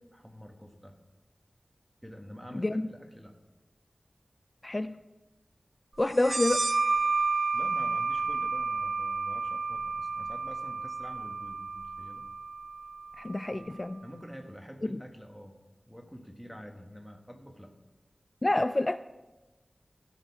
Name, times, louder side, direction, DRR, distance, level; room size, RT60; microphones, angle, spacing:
voice 1, 0.1-1.0 2.0-3.3 7.5-12.3 14.0-17.7, equal, 5° right, 3 dB, 1.5 m, -47 dB
voice 2, 2.5-2.9 4.6-5.0 6.0-6.6 13.2-14.0 14.9-15.0 18.4-19.0, left 2 dB, 30° left, 10 dB, 0.3 m, -28 dB
sound 1, 6.2-13.5, right 4 dB, 45° right, 0.5 m, -31 dB
16.0 x 6.6 x 4.8 m, 1.1 s
wide cardioid pair, 75°, 0 cm